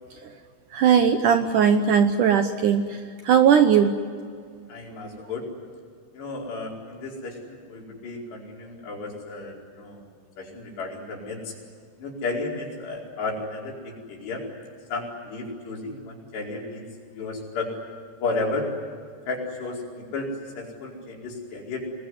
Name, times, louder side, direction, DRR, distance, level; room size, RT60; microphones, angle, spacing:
voice 1, 0.7-4.0, right 7 dB, 75° right, 8 dB, 1.9 m, -19 dB
voice 2, 4.7-5.5 6.1-10.0 10.4-11.6 12.0-14.4 14.9-17.8 18.2-18.7 19.3-21.9, left 3 dB, 80° left, -1 dB, 6.9 m, -33 dB
27.0 x 20.5 x 9.7 m, 2.1 s
omnidirectional pair, 4.8 m